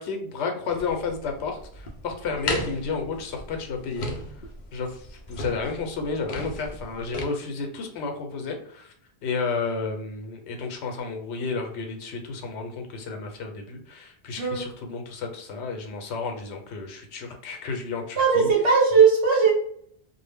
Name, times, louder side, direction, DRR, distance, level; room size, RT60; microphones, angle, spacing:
voice 1, 0.0-4.1 4.7-8.9 9.2-18.5, left 4 dB, 80° left, 4 dB, 0.9 m, -32 dB
sound 1, 0.7-7.3, left 1 dB, 60° left, 0.5 m, -35 dB
voice 2, 18.2-19.5, right 5 dB, 85° right, -2 dB, 0.9 m, -18 dB
2.1 x 2.0 x 3.3 m, 0.62 s
omnidirectional pair, 1.1 m